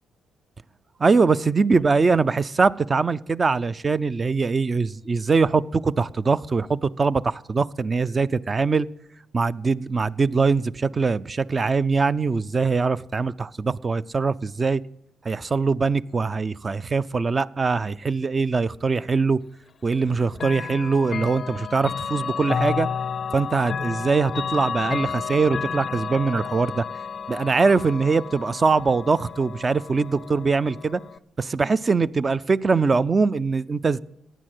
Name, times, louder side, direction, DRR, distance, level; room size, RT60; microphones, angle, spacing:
voice 1, 1.0-8.9 9.3-14.8 15.2-19.4 19.8-22.9 23.3-26.8 27.3-31.0 31.4-34.0, right 4 dB, 30° right, 0.5 m, -22 dB
Chime / Clock, 20.3-31.2, left 6 dB, 45° left, 0.5 m, -31 dB
15.5 x 10.0 x 7.8 m
cardioid pair, 90°, 0 cm